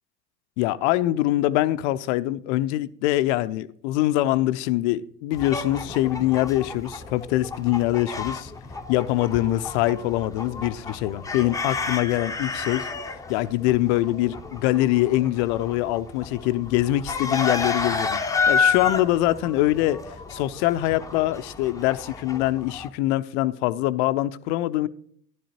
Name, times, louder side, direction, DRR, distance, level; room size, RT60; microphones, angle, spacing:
voice 1, 0.6-8.5 8.9-12.8 13.3-18.2 18.5-20.0 20.3-24.9, left 15 dB, 45° left, 0.5 m, -23 dB
sound 1, 5.3-22.9, left 5 dB, 5° left, 0.7 m, -30 dB
12.5 x 11.0 x 2.9 m
figure-of-eight pair, 70°, 50 cm